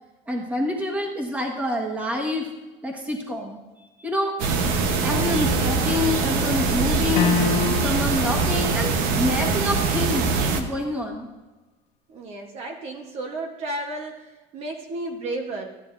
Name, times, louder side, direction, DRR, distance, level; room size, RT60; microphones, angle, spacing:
voice 1, 0.3-2.5 2.8-3.6 4.0-4.4 5.0-11.3, left 1 dB, 10° right, 1 dB, 1.4 m, -27 dB
sound 1, 4.4-10.6, right 4 dB, 75° right, 1.1 m, -23 dB
sound 2, 7.2-8.2, left 7 dB, 50° left, 0.8 m, -24 dB
voice 2, 12.1-15.8, right 2 dB, 45° right, 3 dB, 1.1 m, -33 dB
14.5 x 9.5 x 2.6 m, 1.2 s
cardioid pair, 160°, 14 cm